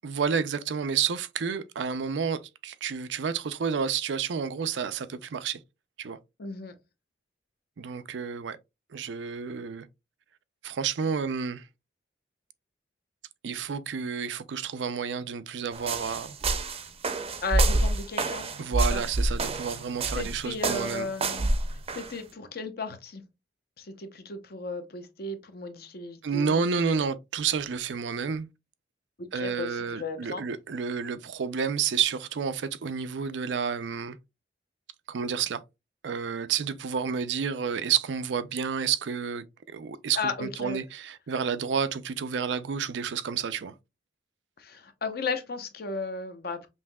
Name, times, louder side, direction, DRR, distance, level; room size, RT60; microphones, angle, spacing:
voice 1, 0.0-5.6 6.0-6.2 7.8-8.6 8.9-9.9 10.6-11.7 13.4-16.4 18.6-21.1 26.2-28.5 29.3-34.2 35.1-35.6 36.0-39.4 39.7-43.7, right 6 dB, 90° right, 0.5 m, -30 dB
voice 2, 6.4-6.7 17.4-18.5 18.8-19.0 20.1-21.5 21.9-23.2 23.8-27.1 29.2-30.5 40.2-40.8 44.6-46.7, left 3 dB, 60° left, 0.7 m, -35 dB
sound 1, 15.7-22.1, right 2 dB, 35° right, 0.5 m, -28 dB
5.6 x 2.7 x 2.2 m
head